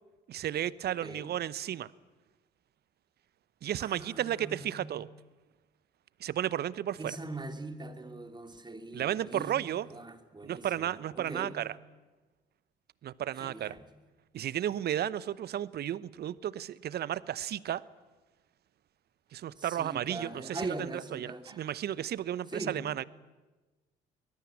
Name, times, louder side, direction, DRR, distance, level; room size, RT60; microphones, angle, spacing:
voice 1, 0.3-1.9 3.6-5.1 6.2-7.2 8.9-9.9 10.4-11.7 13.0-13.8 14.3-17.8 19.3-23.0, right 11 dB, 50° right, 20 dB, 0.9 m, -33 dB
voice 2, 0.9-1.4 3.8-4.9 7.0-9.6 9.9-11.6 13.4-13.9 19.6-21.7 22.5-22.9, right 2 dB, 20° right, 7 dB, 2.8 m, -42 dB
23.0 x 20.5 x 8.6 m, 1.2 s
hypercardioid pair, 50°, 21 cm